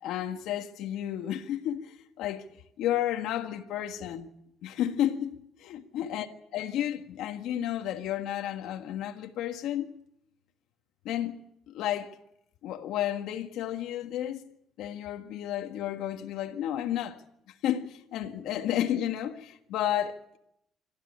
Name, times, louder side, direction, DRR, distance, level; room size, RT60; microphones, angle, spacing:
voice 1, 0.0-2.4 2.8-4.3 4.6-6.3 6.5-9.9 11.0-11.4 11.7-12.1 12.6-14.4 14.8-17.2 17.6-20.4, left 11 dB, 75° left, 1.6 m, -32 dB
26.5 x 13.0 x 8.4 m
cardioid pair, 125°, 0 cm